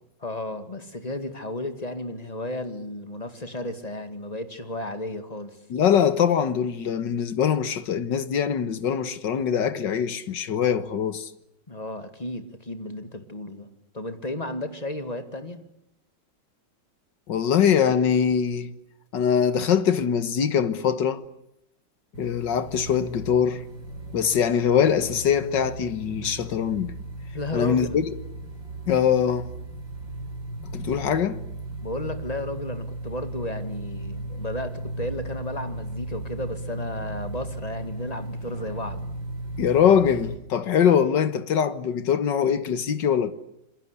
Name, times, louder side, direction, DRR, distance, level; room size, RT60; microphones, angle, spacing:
voice 1, 0.2-5.6 11.7-13.7 13.9-15.6 27.3-28.0 31.8-39.0, left 1 dB, 20° left, 2.1 m, -33 dB
voice 2, 5.7-11.3 17.3-18.7 19.1-21.2 22.2-23.6 24.1-26.9 27.5-28.1 28.9-29.5 30.7-31.4 39.6-43.3, left 8 dB, 70° left, 2.0 m, -22 dB
sound 1, 22.1-40.3, right 2 dB, 85° right, 7.9 m, -36 dB
27.5 x 22.0 x 8.3 m
omnidirectional pair, 2.0 m